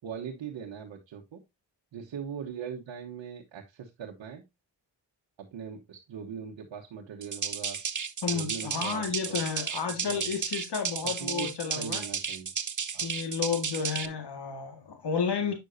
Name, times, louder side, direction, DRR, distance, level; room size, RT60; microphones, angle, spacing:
voice 1, 0.0-1.4 1.9-4.4 5.4-7.8 8.3-9.4 9.9-10.4 11.0-12.5 12.9-13.1 15.4-15.5, right 7 dB, 90° right, 1.2 m, -41 dB
sound 1, 7.2-14.1, right 6 dB, 45° right, 1.1 m, -33 dB
voice 2, 8.2-12.0 13.0-15.5, left 6 dB, 65° left, 1.9 m, -32 dB
9.0 x 6.5 x 2.7 m
cardioid pair, 45°, 44 cm